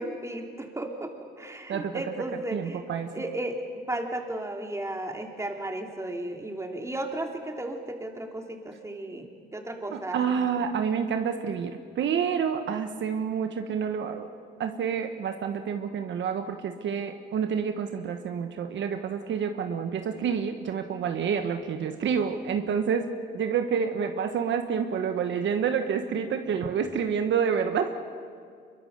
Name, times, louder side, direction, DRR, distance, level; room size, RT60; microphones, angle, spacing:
voice 1, 0.0-2.8 3.1-3.6 3.9-9.3 9.5-10.2 10.6-10.7, right 1 dB, 15° right, 3 dB, 3.2 m, -34 dB
voice 2, 1.7-2.0 2.5-3.1 9.9-14.3 14.6-23.1 23.3-27.9, right 7 dB, 70° right, 7 dB, 1.4 m, -28 dB
25.0 x 23.0 x 6.7 m, 2.1 s
cardioid pair, 90°, 20 cm